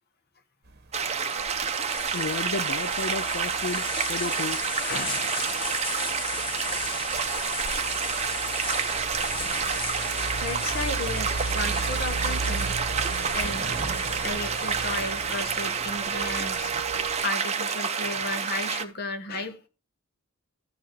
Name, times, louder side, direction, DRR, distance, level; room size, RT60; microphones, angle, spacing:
sound 1, 0.7-17.2, right 3 dB, 50° right, 1.3 m, -37 dB
sound 2, 0.9-18.8, right 6 dB, 30° right, 0.8 m, -29 dB
sound 3, 1.1-16.8, left 5 dB, 25° left, 0.9 m, -38 dB
voice 1, 2.1-4.6, left 4 dB, 65° left, 0.5 m, -33 dB
voice 2, 4.8-5.5 10.4-12.7 13.3-19.7, left 2 dB, 50° left, 1.3 m, -34 dB
14.0 x 4.7 x 4.5 m
head